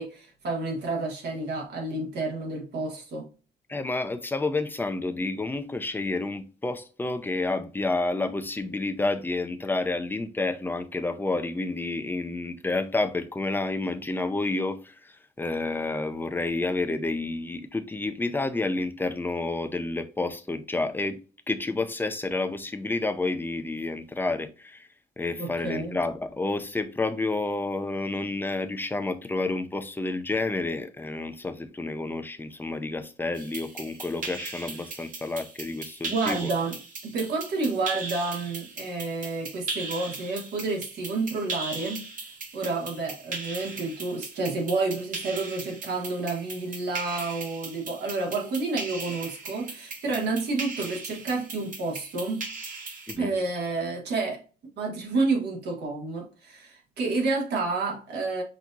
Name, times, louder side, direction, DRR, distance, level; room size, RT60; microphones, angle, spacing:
voice 1, 0.0-3.3 25.4-25.9 36.1-36.8 37.0-42.1 42.5-52.5 53.2-54.4 54.8-58.4, right 3 dB, 75° right, 1.5 m, -30 dB
voice 2, 3.7-21.2 21.5-24.9 25.2-36.5 53.1-53.3, left 2 dB, 10° left, 0.4 m, -30 dB
sound 1, 33.3-53.1, right 3 dB, 50° right, 1.2 m, -38 dB
5.9 x 2.7 x 2.4 m
wide cardioid pair, 160°, 17 cm